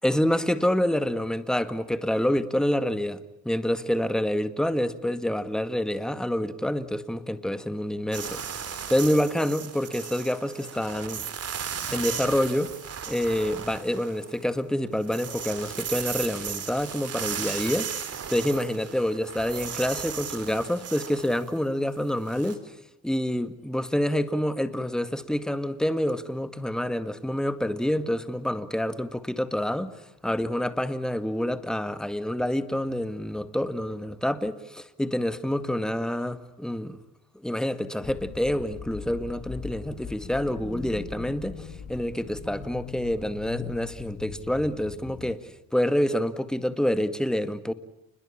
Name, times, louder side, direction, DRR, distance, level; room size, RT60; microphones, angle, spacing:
voice 1, 0.0-11.2 11.9-12.7 13.1-17.9 18.3-22.6 23.0-29.9 30.2-37.0 37.4-45.4 45.7-47.7, left 1 dB, ahead, 1.8 m, -27 dB
sound 1, 8.1-14.5 14.9-22.5, right 7 dB, 55° right, 3.9 m, -36 dB
sound 2, 38.0-45.3, left 7 dB, 60° left, 3.4 m, -40 dB
29.0 x 21.5 x 8.8 m
cardioid pair, 90°, 30 cm